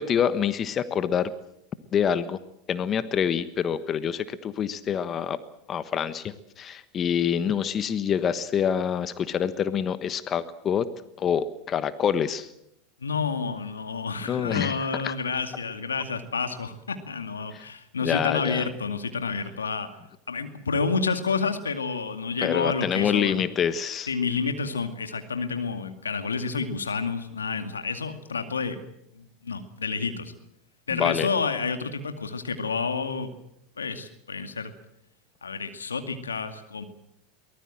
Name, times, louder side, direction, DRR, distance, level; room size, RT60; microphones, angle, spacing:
voice 1, 0.0-1.3 1.9-2.4 2.7-5.4 5.7-10.9 11.2-12.5 14.3-15.1 17.5-17.7 18.0-18.7 22.4-24.1 30.9-31.3, left 8 dB, 35° left, 13 dB, 1.3 m, -26 dB
voice 2, 13.0-19.9 20.3-23.4 24.1-28.8 29.1-30.3 30.9-33.3 33.8-34.7 35.4-36.8, left 5 dB, 85° left, 7 dB, 2.2 m, -29 dB
23.0 x 19.5 x 7.7 m, 0.79 s
hypercardioid pair, 90°, 0 cm